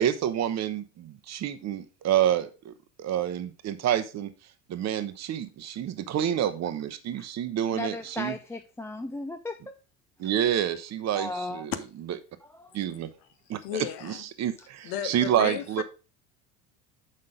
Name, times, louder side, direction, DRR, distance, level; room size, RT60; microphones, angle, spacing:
voice 1, 0.0-2.7 3.0-4.3 4.7-8.3 10.2-11.7 12.7-13.1 13.5-13.6 14.0-15.8, right 10 dB, 35° right, 0.9 m, -28 dB
voice 2, 7.7-9.8 10.2-10.4 11.1-11.7 12.4-12.8 14.6-14.7, left 2 dB, 5° left, 0.5 m, -36 dB
voice 3, 13.6-14.2 14.8-15.8, left 10 dB, 55° left, 1.1 m, -34 dB
6.5 x 5.7 x 5.0 m
hypercardioid pair, 70°, 45 cm